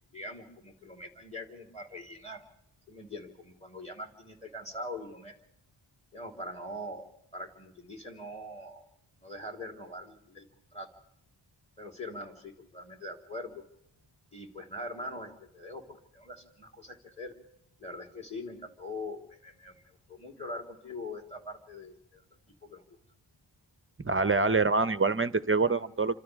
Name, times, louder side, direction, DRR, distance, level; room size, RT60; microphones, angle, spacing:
voice 1, 0.1-2.4 2.9-5.3 6.1-8.8 9.2-10.5 10.7-10.9 11.8-13.6 14.3-17.3 17.8-22.2 22.6-22.8, left 1 dB, 15° left, 2 dB, 3.9 m, -42 dB
voice 2, 24.0-26.2, right 3 dB, 25° right, 14 dB, 0.8 m, -25 dB
29.5 x 26.0 x 3.6 m, 0.75 s
wide cardioid pair, 60°, 49 cm